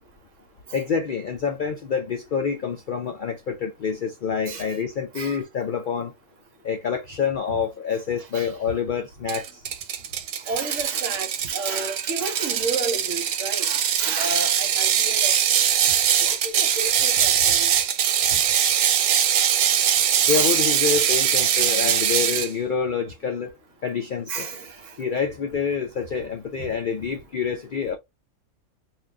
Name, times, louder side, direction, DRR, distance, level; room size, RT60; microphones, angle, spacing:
voice 1, 0.7-6.1 6.6-9.5 20.3-23.5 23.8-24.5 25.0-28.0, left 6 dB, 80° left, 0.4 m, -27 dB
Ratchet pawl, 9.3-22.5, right 9 dB, 80° right, 1.1 m, -22 dB
voice 2, 10.5-15.3 16.2-17.7 20.3-20.5 24.3-24.9 26.6-26.7, right 4 dB, 60° right, 1.1 m, -31 dB
2.9 x 2.5 x 3.4 m
omnidirectional pair, 1.5 m